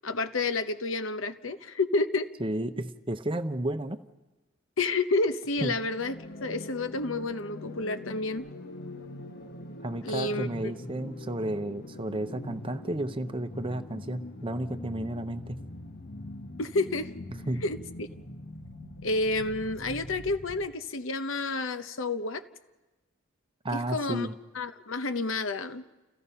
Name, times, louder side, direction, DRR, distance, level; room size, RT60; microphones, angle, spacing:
voice 1, 0.0-2.3 4.8-8.5 10.0-11.0 16.6-17.1 17.6-18.1 19.0-22.4 23.7-24.3 24.5-25.8, left 3 dB, 75° left, 10 dB, 1.0 m, -30 dB
voice 2, 2.4-4.0 5.6-5.7 9.8-15.6 17.5-17.6 23.6-24.3, right 1 dB, 25° right, 8 dB, 0.8 m, -32 dB
sound 1, 5.8-20.7, left 1 dB, 55° left, 1.3 m, -43 dB
29.5 x 15.5 x 5.6 m, 1.2 s
head